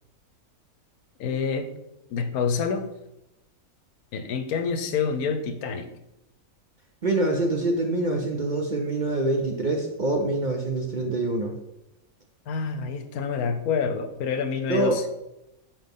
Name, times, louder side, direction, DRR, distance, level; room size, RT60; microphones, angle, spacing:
voice 1, 1.2-1.7 2.1-2.9 4.1-5.9 12.5-15.1, left 6 dB, 80° left, 8 dB, 1.2 m, -27 dB
voice 2, 7.0-11.5 14.7-15.0, right 2 dB, 45° right, 1 dB, 0.6 m, -25 dB
5.8 x 5.2 x 3.6 m, 0.87 s
omnidirectional pair, 1.6 m